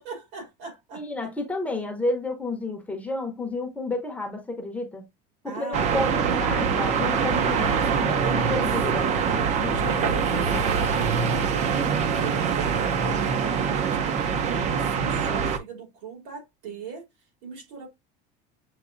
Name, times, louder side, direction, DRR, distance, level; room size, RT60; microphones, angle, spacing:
voice 1, 0.0-1.0 5.4-6.5 7.4-8.6 9.6-13.3 13.6-17.0 17.4-17.9, right 4 dB, 75° right, 2.7 m, -39 dB
voice 2, 0.9-5.0 5.4-9.1 9.6-10.7 11.7-11.9, left 2 dB, 5° left, 0.7 m, -31 dB
sound 1, 5.7-15.6, right 6 dB, 35° right, 0.6 m, -24 dB
7.0 x 2.6 x 2.5 m
cardioid pair, 170°, 21 cm